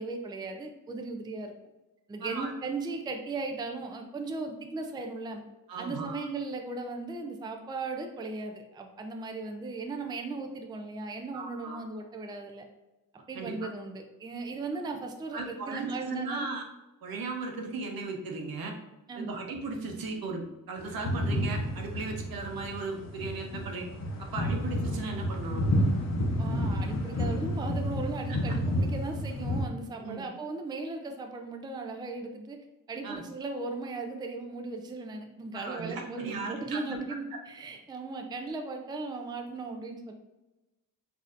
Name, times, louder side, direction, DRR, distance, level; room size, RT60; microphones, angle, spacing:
voice 1, 0.0-1.5 2.1-5.4 5.8-12.7 13.3-16.5 19.1-19.4 26.4-32.6 32.9-40.1, right 3 dB, 15° right, 4 dB, 0.4 m, -37 dB
voice 2, 2.2-2.5 5.7-6.2 11.3-11.8 13.3-13.5 15.3-16.7 17.0-18.8 19.2-23.9 24.2-25.6 28.3-28.6 30.0-30.2 33.0-33.2 35.5-37.0, right 3 dB, 80° right, 2 dB, 0.8 m, -37 dB
sound 1, 20.8-29.6, equal, 50° left, 0.7 m, -30 dB
6.1 x 2.7 x 2.5 m, 1.0 s
wide cardioid pair, 140°, 35 cm